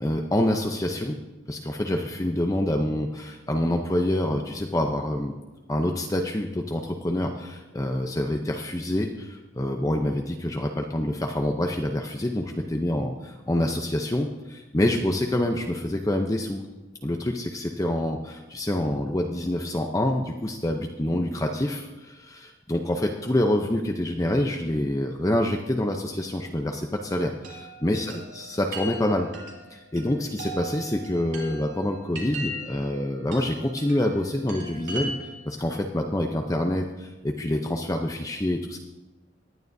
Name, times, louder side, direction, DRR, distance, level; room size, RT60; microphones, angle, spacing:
voice 1, 0.0-1.2 1.5-5.4 5.7-16.6 17.0-29.3 29.7-35.1 35.4-38.8, left 1 dB, 20° left, 2 dB, 0.6 m, -26 dB
Chime, 27.4-35.6, right 1 dB, 80° right, 3.0 m, -39 dB
18.5 x 11.0 x 2.7 m, 1.2 s
head